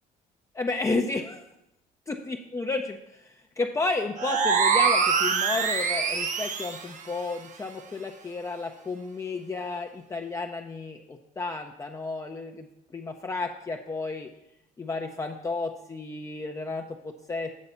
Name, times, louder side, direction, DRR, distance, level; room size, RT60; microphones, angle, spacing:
voice 1, 0.5-1.4 2.1-12.7 12.9-14.3 14.8-17.5, left 3 dB, 20° left, 3 dB, 0.5 m, -32 dB
sound 1, 4.2-6.9, right 5 dB, 50° right, 0.8 m, -24 dB
8.4 x 3.9 x 6.7 m, 0.84 s
cardioid pair, 110°, 17 cm